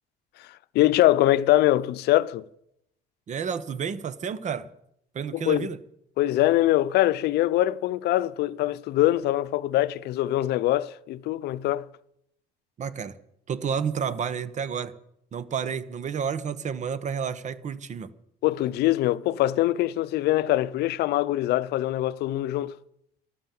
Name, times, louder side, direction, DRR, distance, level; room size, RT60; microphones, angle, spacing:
voice 1, 0.4-2.4 5.3-5.7 6.2-11.9 18.4-22.7, left 15 dB, 80° left, 0.6 m, -23 dB
voice 2, 3.3-4.7 5.1-5.8 12.8-13.2 13.5-14.9 15.3-18.1, right 7 dB, 45° right, 1.0 m, -30 dB
13.0 x 12.0 x 7.6 m
cardioid pair, 110°, 17 cm